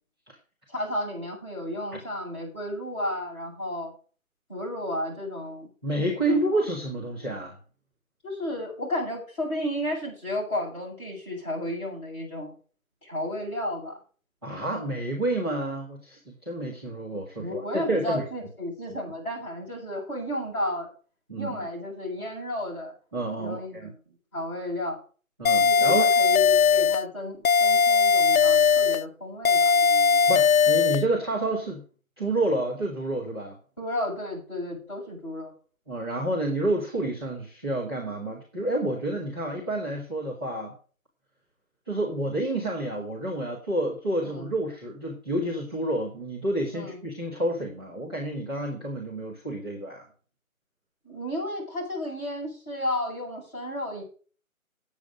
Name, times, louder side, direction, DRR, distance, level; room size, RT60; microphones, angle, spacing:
voice 1, 0.7-3.9 4.5-5.7 6.3-6.4 8.2-12.6 13.0-13.9 17.4-20.9 21.4-22.9 23.4-25.0 25.7-30.3 33.8-35.5 44.2-44.5 46.7-47.0 51.0-54.0, left 1 dB, 20° left, -9 dB, 7.1 m, -33 dB
voice 2, 5.8-7.6 14.4-18.2 21.3-21.6 23.1-23.9 25.4-26.1 30.3-31.8 32.2-33.6 35.9-40.8 41.9-50.1, right 1 dB, 20° right, -9 dB, 2.0 m, -29 dB
sound 1, 25.5-27.0 27.5-29.0 29.5-31.0, left 5 dB, 75° left, 0.6 m, -19 dB
9.8 x 8.3 x 6.2 m, 0.39 s
figure-of-eight pair, 180°, 42 cm